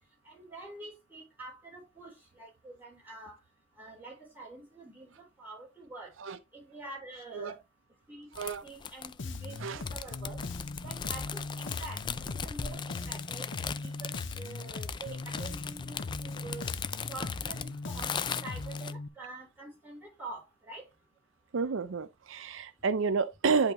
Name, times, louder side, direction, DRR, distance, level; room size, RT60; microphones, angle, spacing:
voice 1, 0.3-3.4 3.8-6.1 6.5-7.6 8.1-8.3 8.6-10.4 10.8-12.0 12.3-16.7 17.1-20.9, right 3 dB, 10° right, 3.6 m, -46 dB
sound 1, 8.3-18.9, left 7 dB, 25° left, 0.3 m, -39 dB
voice 2, 8.4-8.7 9.6-9.8 21.5-23.7, right 5 dB, 85° right, 0.5 m, -30 dB
Bass guitar, 9.2-19.1, left 3 dB, 70° left, 0.8 m, -39 dB
10.5 x 3.7 x 3.0 m
head